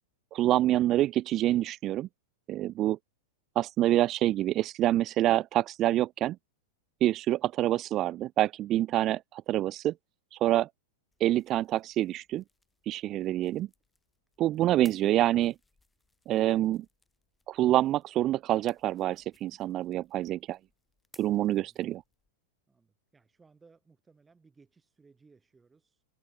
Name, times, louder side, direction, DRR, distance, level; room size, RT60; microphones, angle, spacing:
voice 1, 0.3-2.1 2.5-3.0 3.6-6.4 7.0-9.9 10.4-10.7 11.2-12.4 12.9-13.7 14.4-15.5 16.3-16.9 17.5-20.6 21.2-22.0, right 14 dB, 35° right, 0.5 m, -26 dB
sound 1, 11.1-22.3, left 2 dB, 10° left, 6.2 m, -64 dB
voice 2, 21.5-21.9 22.7-26.0, right 4 dB, 10° right, 7.4 m, -62 dB
hypercardioid pair, 130°, 0 cm